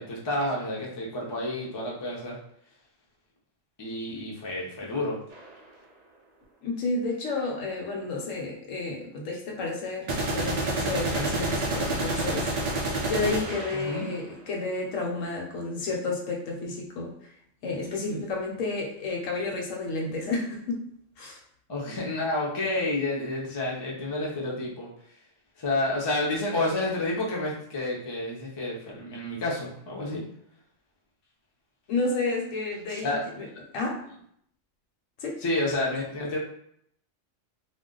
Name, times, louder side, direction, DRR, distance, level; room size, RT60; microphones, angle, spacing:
voice 1, 0.0-2.4 3.8-5.2 13.8-14.1 21.7-24.9 25.6-30.2 32.9-33.2 35.4-36.4, left 2 dB, 30° left, -3 dB, 0.5 m, -30 dB
sound 1, 5.3-5.5 10.1-14.2, right 2 dB, 75° right, 0.3 m, -29 dB
voice 2, 6.6-12.5 13.0-17.3 17.6-20.9 21.2-21.4 31.9-33.5 33.7-34.0 35.2-35.4, left 3 dB, 80° left, 0 dB, 1.1 m, -31 dB
2.4 x 2.2 x 3.7 m, 0.69 s
omnidirectional pair, 1.3 m